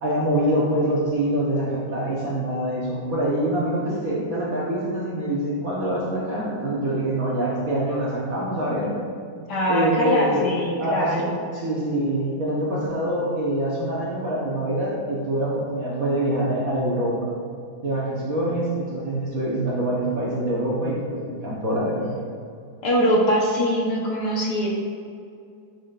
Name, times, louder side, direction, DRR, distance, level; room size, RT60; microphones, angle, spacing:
voice 1, 0.0-8.9 9.7-10.5 10.8-17.3 17.8-22.1, right 1 dB, 55° right, -5 dB, 1.1 m, -25 dB
voice 2, 9.5-11.3 22.8-24.7, equal, 60° left, -3 dB, 1.2 m, -22 dB
7.6 x 5.7 x 2.3 m, 2.4 s
omnidirectional pair, 2.2 m